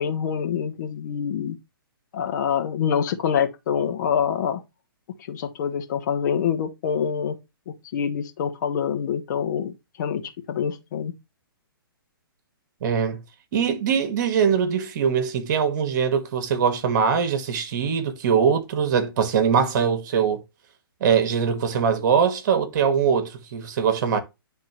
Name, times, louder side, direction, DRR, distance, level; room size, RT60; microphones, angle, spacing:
voice 1, 0.0-1.6 2.1-4.6 5.3-7.4 7.7-11.1, left 8 dB, 50° left, 1.2 m, -26 dB
voice 2, 12.8-13.2 13.5-20.4 21.0-24.2, right 7 dB, 50° right, 1.5 m, -22 dB
10.0 x 3.8 x 3.1 m
hypercardioid pair, 140°, 12 cm